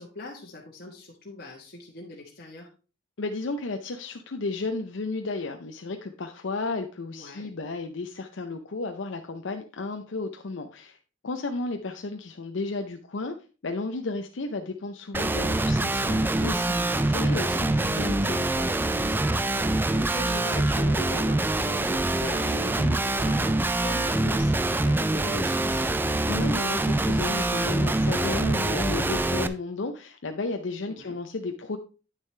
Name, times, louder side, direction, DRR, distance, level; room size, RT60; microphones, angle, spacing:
voice 1, 0.0-2.7 7.1-7.5 17.8-18.0 19.6-25.8 30.9-31.1, left 2 dB, 50° left, -3 dB, 1.3 m, -40 dB
voice 2, 3.2-11.0 11.2-13.3 13.6-18.8 26.3-31.8, left 3 dB, 75° left, 5 dB, 0.6 m, -33 dB
Guitar, 15.1-29.5, right 2 dB, 10° right, 0.3 m, -25 dB
9.1 x 6.5 x 3.2 m, 0.35 s
head